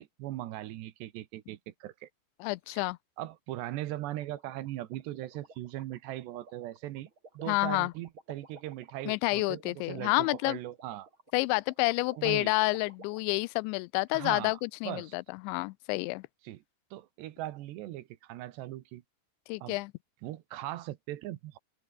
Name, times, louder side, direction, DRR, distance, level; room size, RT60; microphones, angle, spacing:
voice 1, 0.0-2.1 2.7-2.8 3.2-11.1 12.2-12.5 14.1-14.6 14.8-15.1 16.4-16.6 16.9-19.0 19.6-19.8 20.2-21.6, right 15 dB, 75° right, 3.2 m, -39 dB
voice 2, 2.4-3.0 7.5-7.9 9.1-10.6 11.3-16.3 19.5-19.9, left 24 dB, 85° left, 2.9 m, -29 dB
sound 1, 4.1-13.2, right 3 dB, 25° right, 5.7 m, -53 dB
omnidirectional pair, 5.2 m